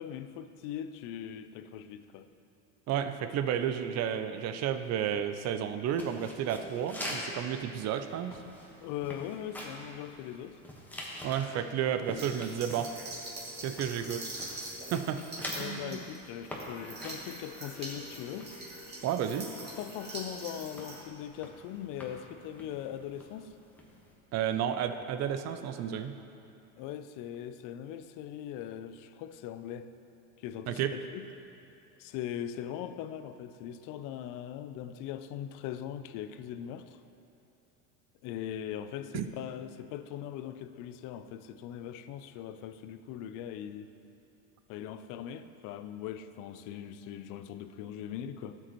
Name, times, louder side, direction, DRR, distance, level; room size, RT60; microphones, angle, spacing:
voice 1, 0.0-2.3 8.8-10.6 11.9-12.2 15.6-18.5 19.4-23.5 26.8-29.9 30.4-31.3 32.0-37.0 38.2-43.9 44.7-48.6, left 10 dB, 50° left, 11 dB, 0.5 m, -40 dB
voice 2, 2.9-8.4 11.2-12.9 13.6-14.6 14.9-15.2 15.6-16.0 19.0-19.5 24.3-26.1 30.7-30.9 39.1-39.3, right 9 dB, 40° right, 10 dB, 0.5 m, -32 dB
sound 1, 5.9-24.1, left 1 dB, 5° left, 1.3 m, -46 dB
sound 2, 12.2-21.0, right 1 dB, 25° right, 2.3 m, -44 dB
12.5 x 7.6 x 3.1 m, 2.8 s
supercardioid pair, 105°, 42 cm